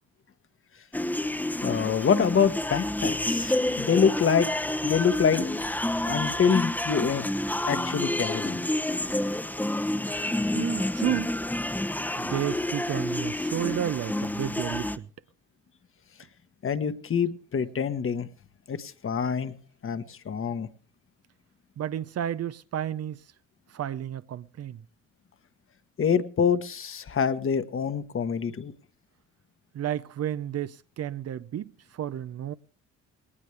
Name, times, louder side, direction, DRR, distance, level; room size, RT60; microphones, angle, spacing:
sound 1, 0.9-15.0, left 1 dB, 5° left, 0.9 m, -29 dB
voice 1, 1.6-4.5 4.8-5.5 6.1-7.2 7.7-8.6 16.6-18.3 18.7-19.5 19.8-20.7 26.0-28.7, left 7 dB, 45° left, 1.3 m, -26 dB
voice 2, 10.5-11.3 12.2-15.1 21.8-23.2 23.7-24.8 29.7-32.5, right 10 dB, 55° right, 0.7 m, -31 dB
19.5 x 18.5 x 3.4 m
cardioid pair, 90°, 30 cm